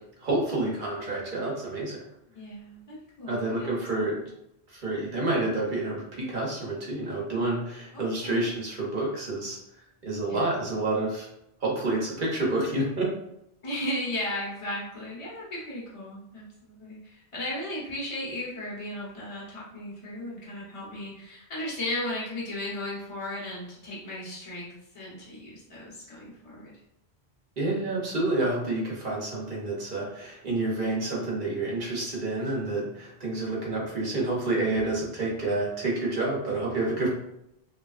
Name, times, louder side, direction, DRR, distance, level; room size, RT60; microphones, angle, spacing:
voice 1, 0.2-2.0 3.3-4.2 4.7-9.6 10.0-11.3 11.6-13.0 27.6-37.1, right 2 dB, 50° right, -4 dB, 0.9 m, -29 dB
voice 2, 2.3-4.3 7.9-8.5 10.3-10.5 13.6-26.7, left 1 dB, 30° left, -6 dB, 1.0 m, -36 dB
3.1 x 2.4 x 2.4 m, 0.83 s
omnidirectional pair, 1.1 m